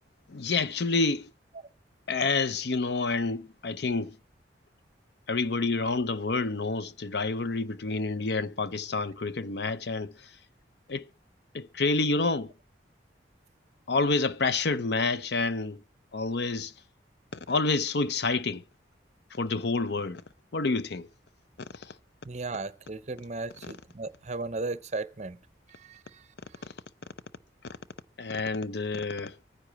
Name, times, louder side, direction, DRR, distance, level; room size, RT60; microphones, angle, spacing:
voice 1, 0.3-1.3 2.1-4.1 5.3-10.1 10.9-11.1 11.5-12.5 13.9-15.8 16.1-16.7 17.3-18.6 19.4-20.2 20.5-21.1 28.2-29.3, left 3 dB, 65° left, 0.6 m, -28 dB
voice 2, 22.2-25.4 25.8-26.0, right 3 dB, 40° right, 0.6 m, -35 dB
24.0 x 9.8 x 3.0 m
head